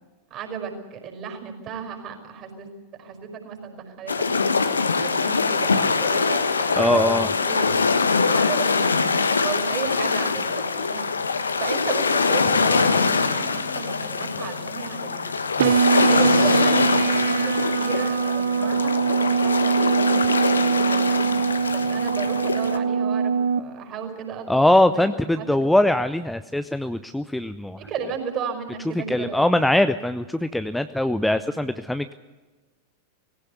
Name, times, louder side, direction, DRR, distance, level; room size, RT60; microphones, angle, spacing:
voice 1, 0.3-2.7 3.0-4.6 5.0-7.7 8.1-11.0 11.6-15.2 15.9-21.4 21.7-25.1 25.4-25.6 27.8-29.7 31.3-31.6, right 6 dB, 35° right, 4 dB, 5.6 m, -34 dB
sound 1, 4.1-22.8, left 4 dB, 75° left, 1.1 m, -23 dB
voice 2, 6.8-7.3 15.6-15.8 24.5-27.8 29.1-32.1, left 1 dB, 5° left, 11 dB, 0.6 m, -21 dB
sound 2, 15.6-23.6, right 6 dB, 60° right, 0.7 m, -22 dB
19.0 x 17.0 x 8.4 m, 1.2 s
figure-of-eight pair, 90°, 0 cm